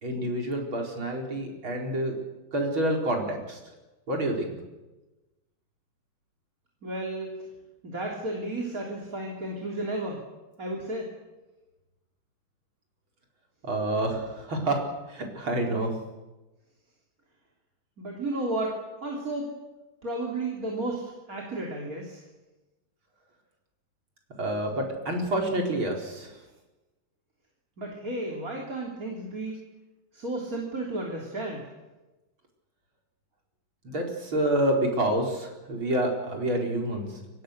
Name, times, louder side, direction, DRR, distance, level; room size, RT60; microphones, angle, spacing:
voice 1, 0.0-2.2 2.5-3.6 4.1-4.5 13.6-15.9 24.4-26.4 33.8-37.2, right 1 dB, 85° right, 1 dB, 5.4 m, -28 dB
voice 2, 6.8-7.3 7.8-10.2 10.6-11.1 18.0-19.6 20.0-22.2 27.8-29.6 30.1-31.7, right 2 dB, 45° right, -1 dB, 3.8 m, -33 dB
29.0 x 23.5 x 6.7 m, 1.1 s
omnidirectional pair, 2.2 m